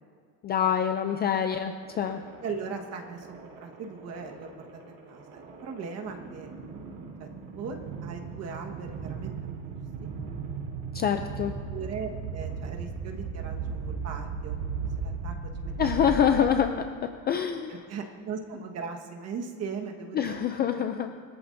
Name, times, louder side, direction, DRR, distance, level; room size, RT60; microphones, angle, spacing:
voice 1, 0.4-2.2 10.9-11.5 15.8-16.7 17.0-17.8 20.1-21.1, left 8 dB, 25° left, 6 dB, 0.3 m, -26 dB
sound 1, 1.8-16.9, right 5 dB, 75° right, 3.4 m, -37 dB
voice 2, 2.4-4.8 5.1-6.5 7.2-9.8 11.7-14.6 15.0-15.3 15.6-16.5 17.7-20.3 20.7-20.9, right 5 dB, 40° right, 3 dB, 1.4 m, -39 dB
21.0 x 14.0 x 2.6 m, 2.1 s
cardioid pair, 160°, 41 cm